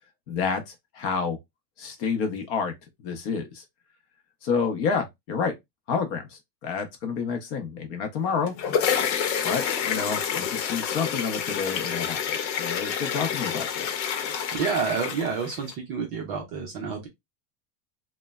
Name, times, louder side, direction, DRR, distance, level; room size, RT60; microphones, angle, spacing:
voice 1, 0.3-1.4 1.8-2.7 3.0-3.6 4.4-5.5 5.9-8.5 9.4-14.0, left 5 dB, 40° left, 0.6 m, -29 dB
sound 1, 8.3-15.7, left 8 dB, 90° left, 0.8 m, -28 dB
voice 2, 14.6-17.1, right 5 dB, 30° right, 0.4 m, -29 dB
3.0 x 2.1 x 2.2 m
supercardioid pair, 165°, 49 cm